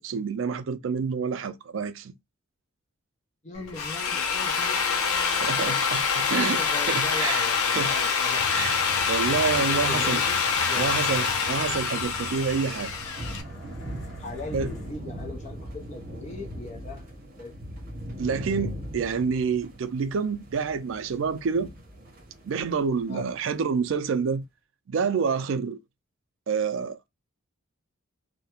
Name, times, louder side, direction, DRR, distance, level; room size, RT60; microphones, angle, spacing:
voice 1, 0.0-2.1 5.4-6.6 6.9-8.0 8.5-8.8 9.1-10.2 10.7-12.9 14.5-14.7 18.2-21.7 22.4-24.4 24.9-25.8 26.5-27.1, right 5 dB, 60° right, 0.3 m, -28 dB
voice 2, 3.4-5.8 6.3-8.5 9.6-11.0 14.2-17.1 17.4-17.5 23.1-23.3, left 2 dB, 35° left, 0.5 m, -39 dB
Drill, 3.6-13.4, left 6 dB, 85° left, 0.5 m, -26 dB
sound 1, 8.3-16.5, right 3 dB, 55° left, 1.1 m, -43 dB
sound 2, 13.2-23.3, equal, 40° right, 0.7 m, -40 dB
2.3 x 2.1 x 2.9 m
head